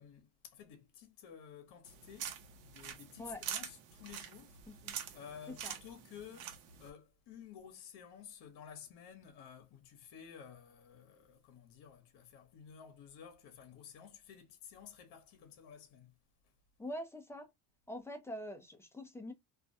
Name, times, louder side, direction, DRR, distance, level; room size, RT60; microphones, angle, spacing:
voice 1, 0.0-4.8 5.1-16.1, left 8 dB, 55° left, 0.9 m, -53 dB
sound 1, 1.9-6.9, right 9 dB, 70° right, 0.8 m, -45 dB
voice 2, 16.8-17.5 17.9-19.3, equal, 5° left, 0.4 m, -44 dB
2.4 x 2.1 x 2.6 m
supercardioid pair, 100°, 48 cm